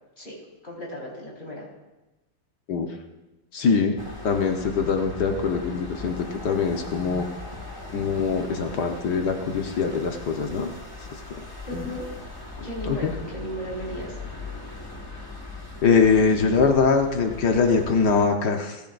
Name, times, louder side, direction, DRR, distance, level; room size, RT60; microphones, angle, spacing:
voice 1, 0.2-1.7 11.6-12.1 12.6-14.2, equal, 30° left, -4 dB, 4.9 m, -35 dB
voice 2, 3.5-4.0 4.2-7.3 7.9-10.7 11.7-11.9 12.6-13.1 15.8-18.8, left 5 dB, 75° left, 3 dB, 1.7 m, -23 dB
sound 1, 4.0-18.3, left 3 dB, 15° left, 1.7 m, -39 dB
30.0 x 11.5 x 2.6 m, 1.0 s
omnidirectional pair, 1.8 m